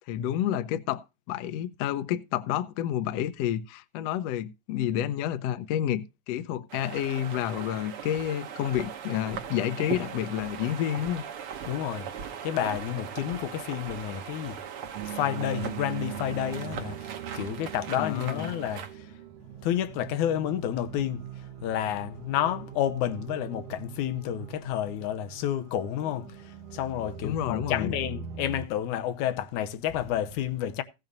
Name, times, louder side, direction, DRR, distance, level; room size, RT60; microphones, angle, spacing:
voice 1, 0.1-11.2 18.0-18.5 27.2-28.0, left 11 dB, 70° left, 1.7 m, -30 dB
sound 1, 6.7-18.9, right 8 dB, 60° right, 1.7 m, -39 dB
voice 2, 11.7-12.1 12.4-14.6 15.1-19.1 19.6-30.8, left 11 dB, 90° left, 2.2 m, -30 dB
sound 2, 14.9-28.7, right 10 dB, 75° right, 1.5 m, -41 dB
16.0 x 9.0 x 2.5 m
omnidirectional pair, 3.4 m